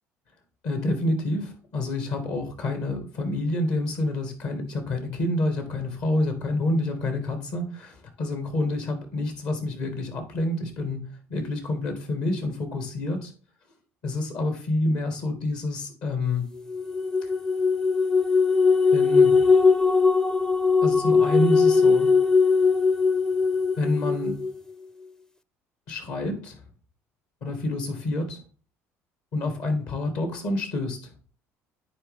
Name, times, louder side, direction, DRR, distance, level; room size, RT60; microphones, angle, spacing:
voice 1, 0.6-13.3 14.0-16.5 17.2-17.3 18.9-19.4 20.8-22.1 23.8-24.4 25.9-26.6 27.4-28.4 29.3-31.1, left 2 dB, 65° left, 6 dB, 2.3 m, -28 dB
sound 1, 16.7-24.5, left 4 dB, 10° left, 0.5 m, -20 dB
9.8 x 4.6 x 3.8 m, 0.40 s
hypercardioid pair, 60°, 7 cm